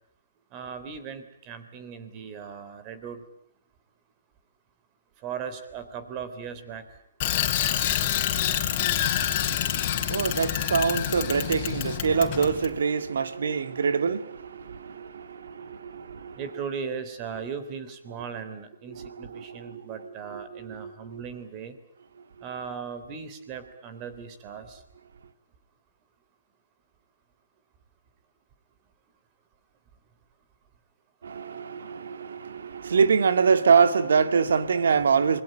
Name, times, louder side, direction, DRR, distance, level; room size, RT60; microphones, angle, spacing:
voice 1, 0.5-3.2 5.2-6.8 16.4-21.8 22.4-24.8, right 6 dB, 25° right, 3.3 m, -38 dB
Bicycle, 7.2-12.7, left 11 dB, 35° left, 3.6 m, -27 dB
voice 2, 8.7-16.4 18.9-21.2 31.2-35.4, right 6 dB, 70° right, 2.1 m, -25 dB
27.5 x 21.5 x 9.0 m
hypercardioid pair, 155°, 0 cm